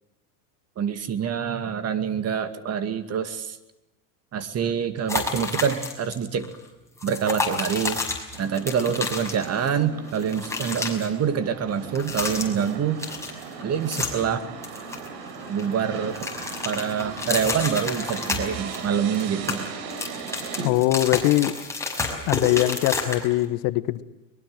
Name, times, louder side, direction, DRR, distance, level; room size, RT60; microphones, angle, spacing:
voice 1, 0.8-3.6 4.3-6.5 7.0-8.0 8.4-13.0 13.6-14.4 15.5-16.2 16.6-19.7, right 7 dB, 35° right, 11 dB, 2.2 m, -26 dB
sound 1, 5.1-6.1 6.4-6.6 7.0-9.8 10.0-11.1 11.8-12.7 13.0-14.3 14.6-15.7 16.0-18.8 19.1-23.4, left 3 dB, 5° left, 5.7 m, -30 dB
sound 2, 8.3-20.7, right 5 dB, 55° right, 4.0 m, -38 dB
voice 2, 20.6-21.5 22.3-24.0, left 16 dB, 50° left, 14 dB, 1.3 m, -22 dB
23.0 x 21.5 x 7.8 m, 0.94 s
hypercardioid pair, 105°, 46 cm